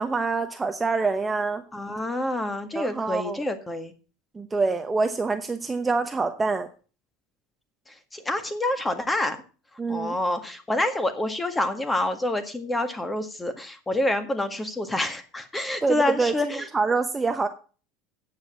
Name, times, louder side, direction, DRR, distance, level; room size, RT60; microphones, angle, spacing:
voice 1, 0.0-1.6 2.7-3.4 4.3-6.7 9.8-10.2 15.8-17.5, right 4 dB, 15° right, 7 dB, 0.9 m, -26 dB
voice 2, 1.7-3.9 8.1-9.4 9.9-16.7, left 1 dB, 10° left, 9 dB, 1.7 m, -27 dB
9.5 x 7.7 x 7.2 m, 0.37 s
supercardioid pair, 120°, 0 cm